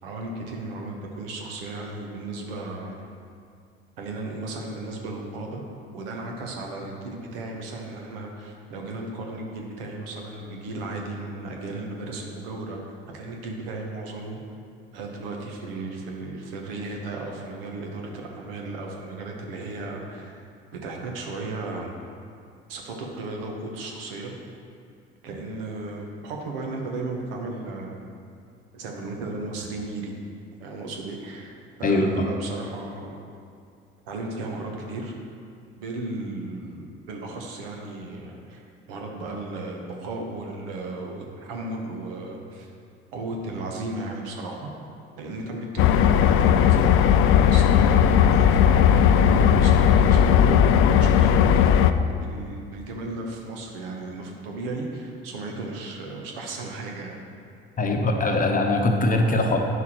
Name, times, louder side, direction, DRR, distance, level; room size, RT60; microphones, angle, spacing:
voice 1, 0.0-3.0 4.0-5.6 5.9-14.4 14.9-20.4 20.8-22.0 22.7-24.3 25.2-28.0 28.7-30.1 30.6-33.2 34.0-35.1 35.8-42.7 43.1-44.7 45.2-57.2, right 2 dB, 70° right, 1 dB, 1.0 m, -35 dB
voice 2, 31.8-32.3 57.8-59.6, left 2 dB, 30° left, 3 dB, 0.9 m, -22 dB
sound 1, 45.8-51.9, left 8 dB, 45° left, 0.4 m, -17 dB
9.2 x 5.9 x 3.0 m, 2.3 s
figure-of-eight pair, 55°, 29 cm